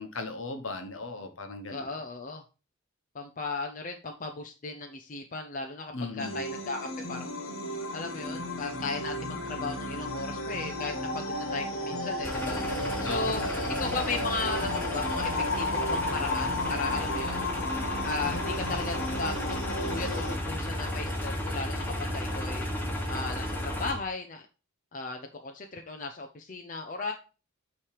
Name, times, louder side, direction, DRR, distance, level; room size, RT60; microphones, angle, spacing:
voice 1, 0.0-1.9 5.9-6.6 13.0-13.6, left 3 dB, 65° left, 6 dB, 1.1 m, -37 dB
voice 2, 1.7-2.4 3.1-7.3 7.9-12.6 13.0-13.4 13.7-15.3 15.6-17.4 18.0-22.7 23.1-24.5 24.9-27.1, left 3 dB, 40° left, 3 dB, 0.6 m, -36 dB
sound 1, 6.2-20.3, left 1 dB, 85° left, 1.5 m, -33 dB
sound 2, 12.2-23.9, left 1 dB, 10° left, 1.2 m, -34 dB
8.9 x 3.2 x 4.7 m, 0.34 s
head